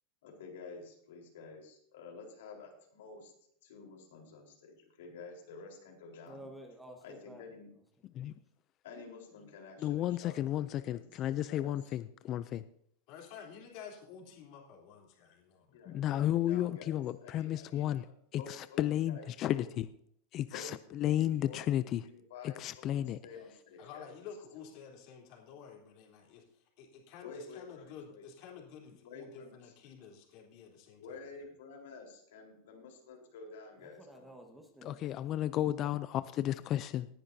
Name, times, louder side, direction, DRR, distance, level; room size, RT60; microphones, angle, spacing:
voice 1, 0.2-3.3 3.6-6.4 7.0-7.7 8.8-11.9 15.7-17.9 18.3-19.7 20.5-21.8 22.0-24.1 24.6-24.7 27.2-28.3 29.0-29.7 31.0-34.3, left 4 dB, 85° left, 1 dB, 4.0 m, -50 dB
voice 2, 6.2-7.4 33.8-35.2, right 1 dB, 5° right, 3 dB, 1.4 m, -52 dB
voice 3, 9.8-12.6 15.9-18.0 18.3-19.9 20.3-22.0 22.4-23.2 34.8-37.1, left 12 dB, 35° left, 13 dB, 0.4 m, -33 dB
voice 4, 13.1-15.8 23.8-31.4, left 7 dB, 50° left, -1 dB, 3.5 m, -51 dB
18.5 x 10.5 x 2.7 m, 0.67 s
supercardioid pair, 155°, 0 cm